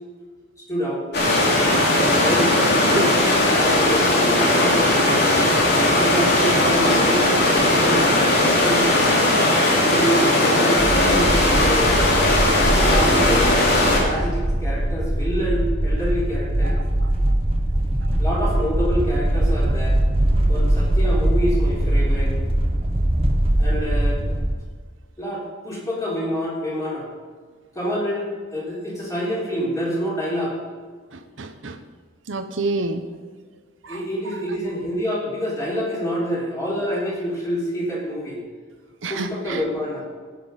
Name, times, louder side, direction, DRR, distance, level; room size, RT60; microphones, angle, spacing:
voice 1, 0.7-1.1 2.1-3.2 3.5-4.8 5.8-9.0 9.9-12.0 12.9-13.6 14.0-16.8 18.2-20.0 20.5-22.3 23.6-24.2 25.2-27.1 27.7-30.6 33.9-38.4 39.1-40.0, equal, 15° left, -5 dB, 3.4 m, -27 dB
sound 1, 1.1-14.0, left 1 dB, 55° left, 2.7 m, -18 dB
sound 2, 10.8-24.5, right 1 dB, 30° right, 1.2 m, -21 dB
voice 2, 31.1-31.8 32.3-33.0 33.8-34.0 39.0-39.6, right 3 dB, 70° right, 8 dB, 0.9 m, -28 dB
16.0 x 6.2 x 5.4 m, 1.5 s
head